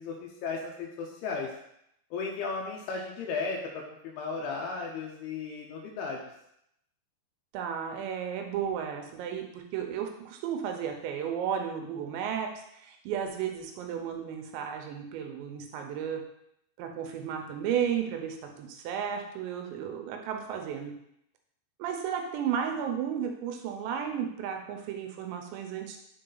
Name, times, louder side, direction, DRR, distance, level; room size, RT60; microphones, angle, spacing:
voice 1, 0.0-1.5 2.1-6.2, left 4 dB, 80° left, -1 dB, 2.3 m, -35 dB
voice 2, 7.5-16.2 16.8-20.9 21.8-26.0, right 8 dB, 85° right, 4 dB, 3.0 m, -33 dB
6.3 x 3.9 x 3.9 m, 0.77 s
omnidirectional pair, 5.1 m